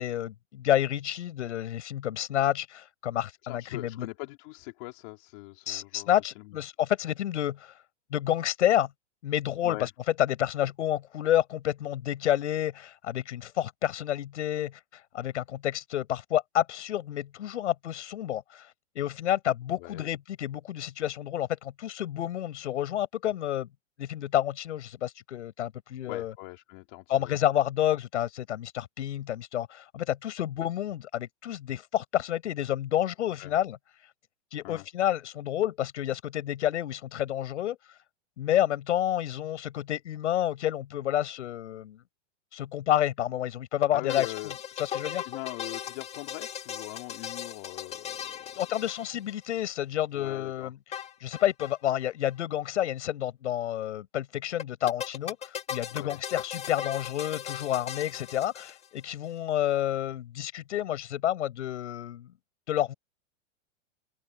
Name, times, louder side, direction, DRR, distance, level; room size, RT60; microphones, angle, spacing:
voice 1, 0.0-4.1 5.7-7.7 8.1-8.9 9.2-9.9 10.2-14.8 15.1-18.7 18.9-23.7 24.0-26.3 27.1-33.8 34.5-37.8 38.4-42.0 42.5-45.2 48.6-50.8 51.2-62.3 62.7-62.9, left 12 dB, 80° left, 6.8 m, -29 dB
voice 2, 3.4-6.6 9.6-9.9 19.8-20.1 26.1-27.3 33.4-33.5 34.6-34.8 43.9-44.5 45.2-48.6 50.1-50.7 55.9-56.2, left 24 dB, 45° left, 3.3 m, -41 dB
sound 1, 43.8-49.6 50.9-51.8 52.0-52.1 52.3-52.4 54.6-59.1, left 9 dB, 20° left, 1.7 m, -38 dB
open air
supercardioid pair, 155°, 35 cm